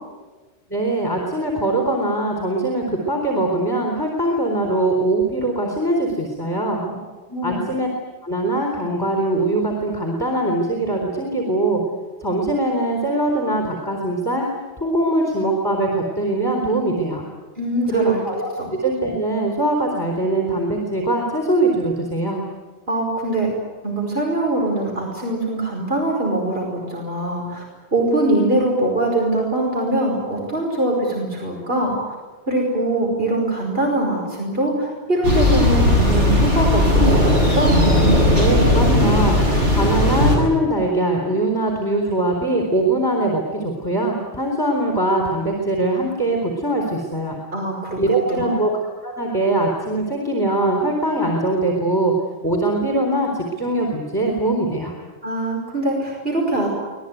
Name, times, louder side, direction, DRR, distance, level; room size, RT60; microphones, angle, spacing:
voice 1, 0.7-6.8 7.4-7.9 8.2-11.8 12.2-14.4 14.8-17.2 17.9-18.5 18.8-22.4 38.4-39.4 39.7-47.3 48.0-48.7 49.0-52.1 52.4-54.9, right 2 dB, 20° left, 1 dB, 4.1 m, -22 dB
voice 2, 7.3-7.7 17.6-18.3 18.6-18.7 22.9-23.5 23.8-27.6 27.9-32.0 32.5-37.7 47.5-48.0 48.3-48.7 55.2-56.7, right 1 dB, 60° right, -1 dB, 5.5 m, -22 dB
Thunder, 35.2-40.4, left 1 dB, 85° right, 8.1 m, -16 dB
26.0 x 20.0 x 9.5 m, 1.3 s
omnidirectional pair, 1.1 m